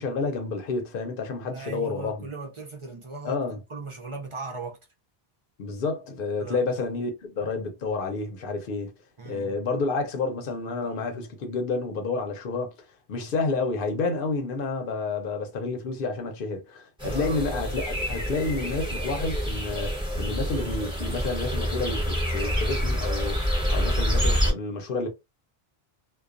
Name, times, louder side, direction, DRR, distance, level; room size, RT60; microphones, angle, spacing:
voice 1, 0.0-2.3 3.2-3.6 5.6-8.9 9.2-12.7 13.1-25.1, left 3 dB, 60° left, 0.9 m, -30 dB
voice 2, 1.5-3.4 3.7-4.8 6.4-6.6 9.2-9.6 17.0-17.4, right 3 dB, 45° right, 0.4 m, -38 dB
sound 1, 17.0-24.5, equal, 5° right, 0.9 m, -27 dB
2.3 x 2.2 x 2.4 m
omnidirectional pair, 1.1 m